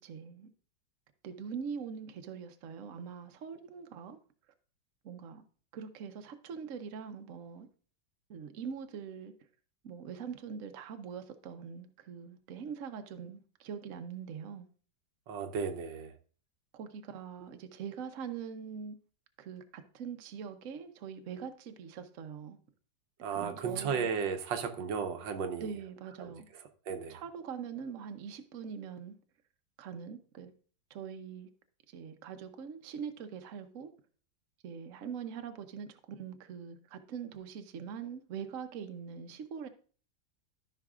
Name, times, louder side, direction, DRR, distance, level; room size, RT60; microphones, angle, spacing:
voice 1, 0.0-0.5 1.2-4.2 5.0-5.4 5.7-7.7 8.3-9.3 9.8-14.7 16.7-19.0 19.4-22.6 23.3-24.1 25.6-26.5 27.1-29.1 29.8-30.5 30.9-31.5 31.9-33.9 34.6-39.7, right 7 dB, 55° right, 1.0 m, -43 dB
voice 2, 15.3-16.1 23.2-25.7 26.2-26.3 26.9-27.2, right 6 dB, 85° right, 1.6 m, -34 dB
13.5 x 5.7 x 2.4 m
omnidirectional pair, 2.0 m